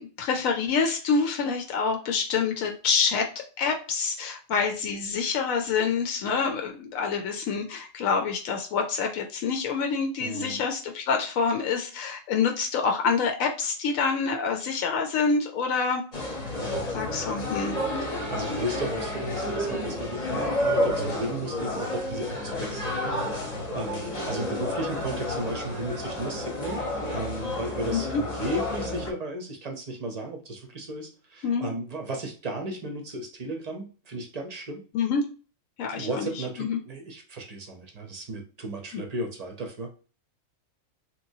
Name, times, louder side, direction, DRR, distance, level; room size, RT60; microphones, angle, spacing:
voice 1, 0.0-3.3 3.6-16.0 16.9-17.7 27.9-28.2 31.4-31.7 34.9-35.2 35.8-36.3 36.6-36.8 38.9-39.0, left 5 dB, 85° left, 3 dB, 1.0 m, -26 dB
voice 2, 10.2-10.6 16.6-16.9 18.3-26.8 27.1-34.8 35.9-40.1, right 1 dB, 40° right, 2 dB, 0.6 m, -35 dB
sound 1, 16.1-29.1, left 1 dB, 35° left, 0.8 m, -30 dB
3.0 x 2.9 x 2.7 m, 0.36 s
omnidirectional pair, 1.4 m